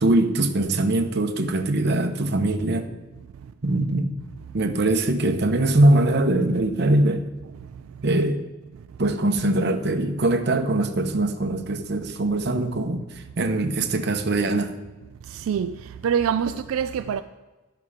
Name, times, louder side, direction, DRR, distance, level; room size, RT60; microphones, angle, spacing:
voice 1, 0.0-2.9 3.6-4.1 4.5-7.2 8.0-8.4 9.0-14.7, right 2 dB, 50° right, 0.8 m, -22 dB
voice 2, 15.3-17.2, right 7 dB, 85° right, 0.3 m, -25 dB
10.5 x 5.8 x 4.9 m
head